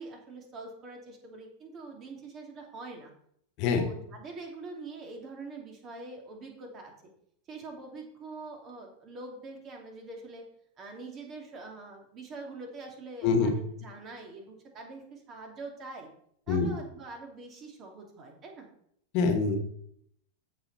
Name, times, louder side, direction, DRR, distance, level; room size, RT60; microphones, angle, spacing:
voice 1, 0.0-3.1 3.7-6.9 7.5-10.5 10.8-16.1 16.5-18.7, right 3 dB, 30° right, 1 dB, 2.9 m, -44 dB
voice 2, 19.1-19.6, left 4 dB, 45° left, 4 dB, 1.8 m, -24 dB
14.5 x 5.3 x 4.3 m, 0.69 s
figure-of-eight pair, 90°, 0 cm